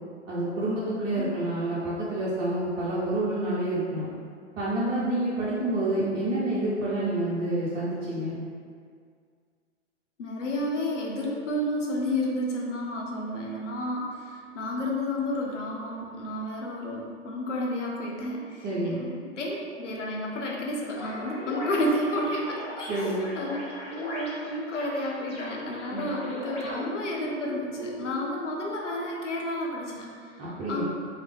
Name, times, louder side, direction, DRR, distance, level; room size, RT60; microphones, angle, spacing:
voice 1, 0.3-4.1 4.6-8.3 18.6-19.0 22.9-23.3 25.9-26.0 30.4-30.8, right 1 dB, 25° right, -8 dB, 0.6 m, -28 dB
voice 2, 10.2-30.4 30.7-30.8, left 1 dB, 75° left, -2 dB, 0.7 m, -31 dB
sound 1, 20.9-28.2, left 1 dB, 15° left, 0.5 m, -38 dB
3.1 x 2.0 x 3.3 m, 2.1 s
figure-of-eight pair, 105°, 36 cm